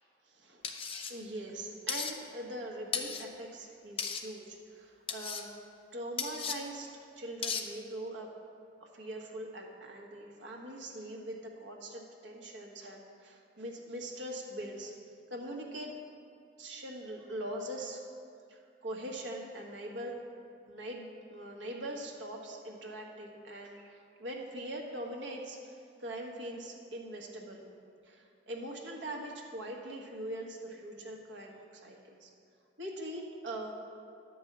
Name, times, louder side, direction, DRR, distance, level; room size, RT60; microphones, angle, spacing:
voice 1, 0.2-5.5 5.9-8.3 8.8-14.9 15.3-15.9 16.6-18.0 18.5-20.2 20.7-27.7 28.0-32.3 32.8-33.7, right 1 dB, 90° right, 0 dB, 1.4 m, -42 dB
sound 1, 0.6-1.1 1.9-2.1 2.9-3.2 4.0-4.2 5.1-5.4 6.2-6.6 7.4-7.6, left 6 dB, 30° left, 0.6 m, -35 dB
10.5 x 5.4 x 7.2 m, 2.4 s
head